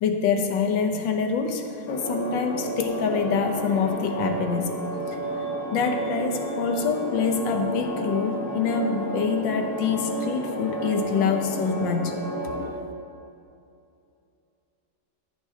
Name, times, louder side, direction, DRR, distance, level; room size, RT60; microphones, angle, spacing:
voice 1, 0.0-4.7 5.1-5.2 5.7-12.2, left 5 dB, 70° left, 5 dB, 1.5 m, -25 dB
sound 1, 1.9-12.7, right 1 dB, 20° left, 0.4 m, -31 dB
14.5 x 9.6 x 2.8 m, 2.6 s
omnidirectional pair, 2.1 m